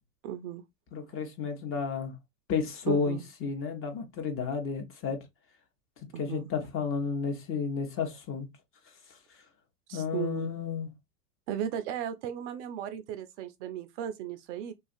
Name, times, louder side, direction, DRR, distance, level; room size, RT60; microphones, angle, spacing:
voice 1, 0.2-0.6 2.9-3.2 6.1-6.5 9.9-10.5 11.5-14.7, right 10 dB, 50° right, 0.5 m, -36 dB
voice 2, 0.9-2.1 2.5-5.2 6.2-8.5 9.9-10.9, left 5 dB, 30° left, 0.7 m, -32 dB
2.8 x 2.3 x 2.5 m
hypercardioid pair, 105°, 47 cm